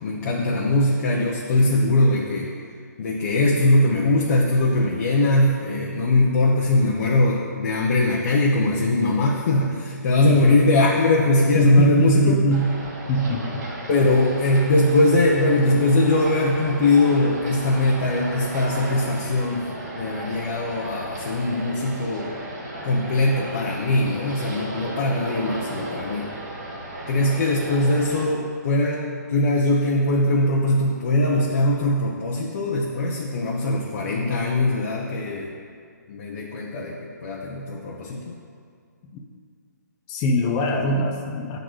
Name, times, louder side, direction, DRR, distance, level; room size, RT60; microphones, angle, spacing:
voice 1, 0.0-2.5 3.0-12.4 13.9-19.7 20.0-22.3 22.8-26.3 27.1-35.5 36.1-38.3, left 2 dB, 45° left, -3 dB, 0.9 m, -21 dB
voice 2, 10.3-10.6 11.5-12.7 13.1-13.7 39.1-39.2 40.1-41.6, equal, 20° left, 2 dB, 0.6 m, -22 dB
sound 1, 12.5-28.2, right 1 dB, 65° right, 2.0 m, -35 dB
7.7 x 3.9 x 6.2 m, 2.2 s
hypercardioid pair, 155°, 10 cm